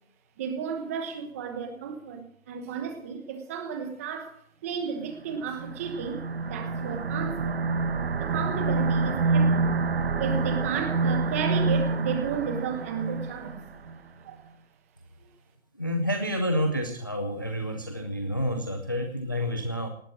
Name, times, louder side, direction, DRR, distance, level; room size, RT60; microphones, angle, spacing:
voice 1, 0.4-6.2 6.5-7.6 8.2-9.8 10.2-13.6 14.2-14.4, right 6 dB, 10° right, 6 dB, 1.1 m, -33 dB
sound 1, 5.3-14.0, right 3 dB, 45° right, 1.3 m, -27 dB
voice 2, 15.8-19.9, equal, 15° left, 5 dB, 0.6 m, -29 dB
18.5 x 11.5 x 6.1 m, 0.63 s
hypercardioid pair, 165°, 41 cm